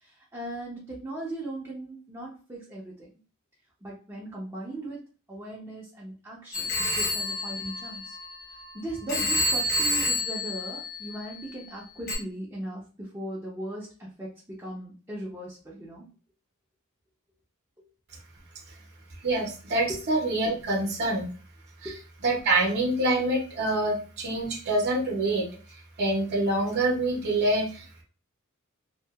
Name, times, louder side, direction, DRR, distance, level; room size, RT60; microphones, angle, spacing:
voice 1, 0.0-3.1 3.8-5.0 5.3-8.2 8.7-16.1 21.8-21.9, right 1 dB, 15° right, -6 dB, 0.6 m, -38 dB
Telephone, 6.5-8.6 9.1-11.4 12.1-12.2, left 1 dB, 45° left, 1.0 m, -28 dB
voice 2, 19.2-21.3 21.8-21.9 22.2-25.4 26.0-28.0, right 2 dB, 50° right, -1 dB, 0.8 m, -26 dB
2.7 x 2.4 x 2.3 m, 0.37 s
head